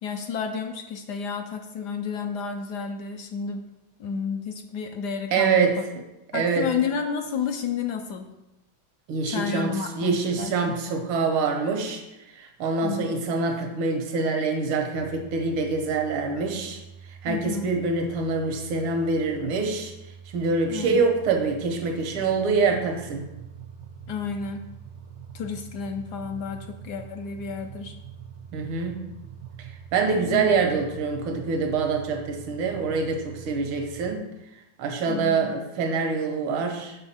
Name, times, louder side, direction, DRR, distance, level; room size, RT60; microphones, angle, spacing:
voice 1, 0.0-3.6 4.0-5.7 6.3-8.3 9.2-10.8 12.8-13.1 17.3-17.7 20.7-21.0 24.1-24.6 25.3-27.9 30.2-30.5 35.1-35.5, left 6 dB, 70° left, 5 dB, 1.0 m, -31 dB
voice 2, 5.3-5.8 6.3-6.7 9.1-12.0 12.4-16.8 17.2-19.9 20.3-23.2 28.5-29.0 29.9-34.2 34.8-37.0, right 4 dB, 90° right, 4 dB, 1.7 m, -25 dB
sound 1, 14.9-34.2, right 7 dB, 60° right, 0.7 m, -44 dB
6.8 x 5.7 x 4.2 m, 0.93 s
omnidirectional pair, 2.2 m